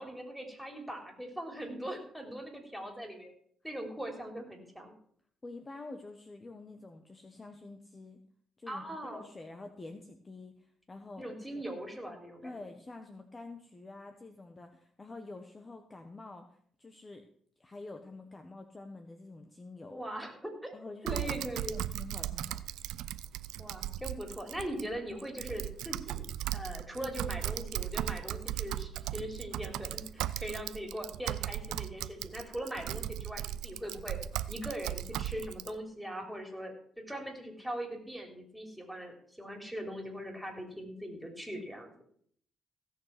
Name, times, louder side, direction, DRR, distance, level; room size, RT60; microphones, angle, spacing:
voice 1, 0.0-3.3 3.6-4.9 8.7-9.3 11.2-12.5 19.9-21.8 23.6-26.3 26.5-34.2 34.5-36.7 37.1-42.0, right 1 dB, ahead, 2 dB, 3.5 m, -41 dB
voice 2, 5.4-8.2 8.6-11.2 11.5-11.6 12.4-17.3 17.6-20.0 20.7-22.6, left 3 dB, 25° left, 6 dB, 1.2 m, -47 dB
Typing, 21.1-35.7, right 13 dB, 90° right, 0.5 m, -37 dB
16.5 x 6.6 x 6.0 m, 0.63 s
cardioid pair, 90°, 0 cm